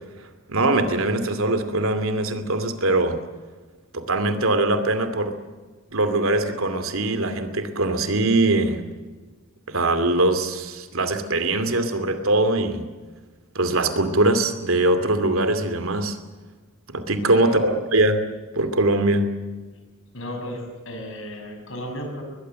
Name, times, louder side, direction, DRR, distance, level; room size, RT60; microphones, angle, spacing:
voice 1, 0.5-3.2 3.9-5.3 5.9-8.8 9.7-12.9 13.5-16.2 16.9-18.2 18.5-19.3, right 2 dB, 75° right, 9 dB, 2.6 m, -22 dB
voice 2, 17.2-17.6 20.1-22.2, equal, 65° left, 4 dB, 6.3 m, -34 dB
22.0 x 21.0 x 7.7 m, 1.3 s
head